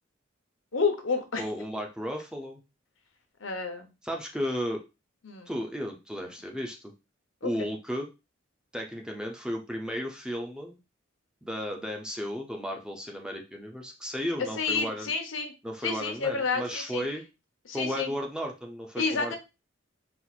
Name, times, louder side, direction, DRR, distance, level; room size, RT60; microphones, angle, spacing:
voice 1, 0.7-1.4 3.4-3.9 5.2-5.5 7.4-7.7 14.6-15.5 15.8-17.0 17.7-18.1 19.0-19.4, left 4 dB, 80° left, 6 dB, 0.9 m, -30 dB
voice 2, 1.4-2.6 4.0-4.8 5.5-6.9 7.4-8.1 8.7-10.8 11.4-15.1 15.6-17.2 17.7-19.4, equal, 5° right, 2 dB, 0.5 m, -34 dB
4.3 x 2.4 x 4.1 m, 0.26 s
head